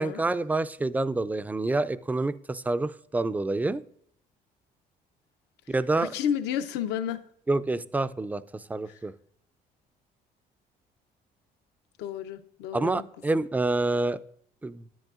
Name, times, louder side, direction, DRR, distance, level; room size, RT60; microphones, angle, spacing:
voice 1, 0.0-3.8 5.7-6.1 7.5-9.1 12.7-14.2 14.6-14.8, right 2 dB, 10° right, 15 dB, 0.3 m, -27 dB
voice 2, 6.0-7.2 12.0-13.0, left 9 dB, 85° left, 9 dB, 0.7 m, -31 dB
9.8 x 9.2 x 2.4 m, 0.66 s
cardioid pair, 110°, 17 cm